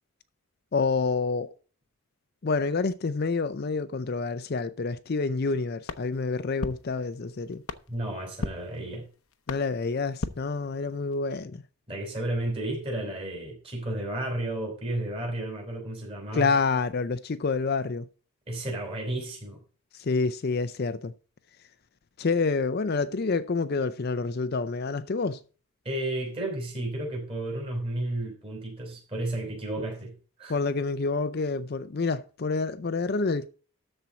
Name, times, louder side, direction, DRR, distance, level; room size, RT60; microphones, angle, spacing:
voice 1, 0.7-1.5 2.4-7.6 9.5-11.6 16.3-18.1 19.9-21.1 22.2-25.4 30.5-33.5, left 4 dB, 45° left, 0.5 m, -28 dB
sound 1, 5.8-11.2, left 3 dB, 75° left, 0.8 m, -39 dB
voice 2, 7.9-9.1 11.9-16.5 18.5-19.6 25.8-30.1 30.4-30.6, right 1 dB, 25° right, 4.6 m, -32 dB
13.0 x 4.5 x 6.9 m
head